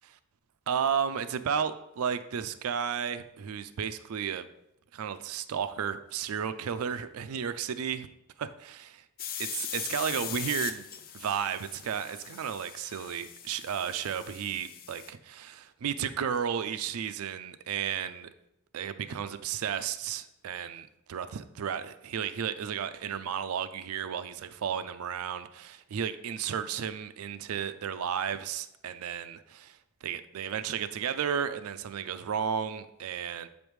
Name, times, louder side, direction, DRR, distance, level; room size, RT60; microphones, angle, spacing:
voice 1, 0.7-4.5 4.9-8.1 8.4-9.0 9.4-10.9 11.1-18.3 18.7-33.5, right 8 dB, 70° right, 11 dB, 0.4 m, -33 dB
sound 1, 9.2-15.1, left 9 dB, 45° left, 0.5 m, -40 dB
7.9 x 5.1 x 3.1 m, 0.86 s
head